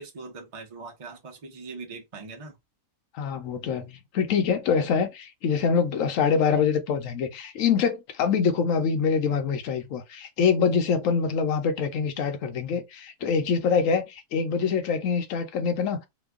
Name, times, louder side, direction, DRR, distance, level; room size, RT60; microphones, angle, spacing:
voice 1, 0.0-2.6, right 4 dB, 30° right, 0.6 m, -41 dB
voice 2, 3.1-16.1, left 6 dB, 65° left, 1.0 m, -25 dB
2.9 x 2.3 x 3.5 m
omnidirectional pair, 1.5 m